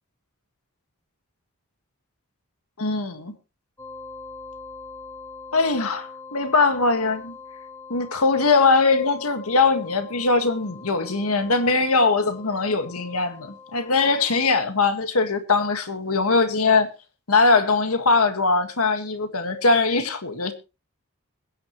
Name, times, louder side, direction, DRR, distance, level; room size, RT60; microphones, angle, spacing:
voice 1, 2.8-3.3 5.5-7.3 7.9-16.9 17.3-20.5, left 3 dB, 85° left, 1.7 m, -21 dB
sound 1, 3.8-14.6, left 4 dB, 15° left, 1.8 m, -43 dB
21.5 x 9.9 x 3.1 m
head